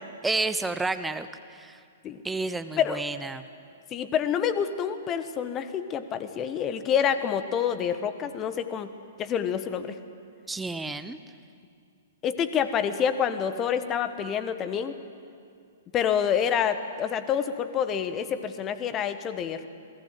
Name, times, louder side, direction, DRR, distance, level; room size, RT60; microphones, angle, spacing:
voice 1, 0.2-1.8 2.2-3.5 10.5-11.2, right 3 dB, 5° right, 11 dB, 0.8 m, -30 dB
voice 2, 3.9-10.0 12.2-14.9 15.9-19.7, left 8 dB, 25° left, 11 dB, 1.3 m, -27 dB
27.0 x 19.5 x 7.8 m, 2.3 s
figure-of-eight pair, 110°, 0 cm